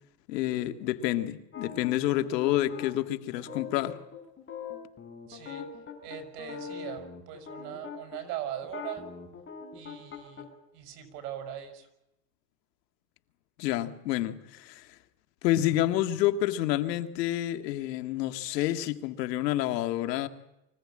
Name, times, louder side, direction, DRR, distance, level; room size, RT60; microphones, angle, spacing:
voice 1, 0.3-4.0 13.6-14.9 15.4-20.3, left 14 dB, 85° left, 1.9 m, -28 dB
sound 1, 1.5-8.2 8.6-10.5, left 6 dB, 25° left, 4.9 m, -42 dB
voice 2, 5.3-5.6 6.0-9.1 9.7-10.5 10.7-11.9, right 10 dB, 75° right, 5.5 m, -40 dB
24.5 x 16.5 x 8.6 m
supercardioid pair, 140°, 48 cm